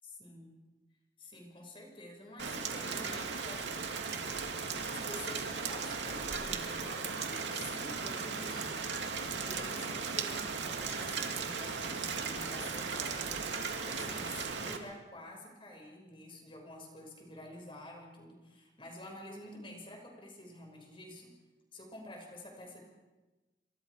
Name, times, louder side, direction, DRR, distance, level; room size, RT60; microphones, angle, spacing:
voice 1, 0.0-0.5 1.2-4.3 4.9-13.3 13.8-21.3 21.7-22.8, left 1 dB, 30° left, 1 dB, 6.2 m, -49 dB
Rain, 2.4-14.8, right 5 dB, 80° right, 2.6 m, -37 dB
29.0 x 27.0 x 5.0 m, 1.1 s
head